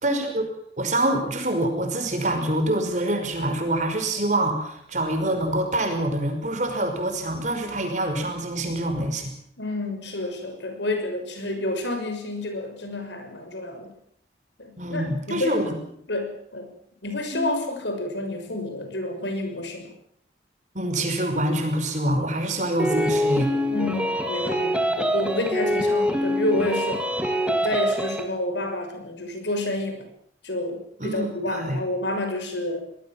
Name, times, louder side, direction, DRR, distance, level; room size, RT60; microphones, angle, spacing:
voice 1, 0.0-0.4 0.8-9.3 14.8-15.8 17.3-17.5 20.7-23.5 31.0-31.8, right 1 dB, 40° right, 5 dB, 5.5 m, -25 dB
voice 2, 9.6-13.9 14.6-15.6 16.1-16.7 17.0-19.9 23.7-27.1 27.5-30.1 30.4-32.8, left 1 dB, 75° left, 6 dB, 6.2 m, -29 dB
sound 1, 22.8-28.3, equal, 5° right, 2.5 m, -24 dB
25.5 x 19.5 x 7.4 m, 0.68 s
head